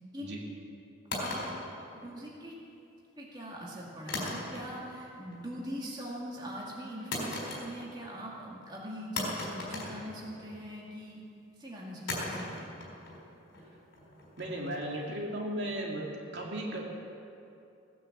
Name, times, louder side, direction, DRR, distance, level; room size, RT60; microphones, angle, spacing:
sound 1, 1.1-2.5 4.1-4.9 5.2-5.7 7.1-8.1 8.3-8.4 9.2-10.7 12.1-15.1, left 2 dB, 60° left, 4.2 m, -38 dB
voice 1, 2.0-2.5 3.2-11.2 11.6-13.0, equal, 20° right, -5 dB, 2.2 m, -42 dB
voice 2, 14.4-16.1 16.3-16.8, right 1 dB, 55° right, -2 dB, 2.5 m, -35 dB
17.5 x 9.9 x 7.4 m, 2.6 s
head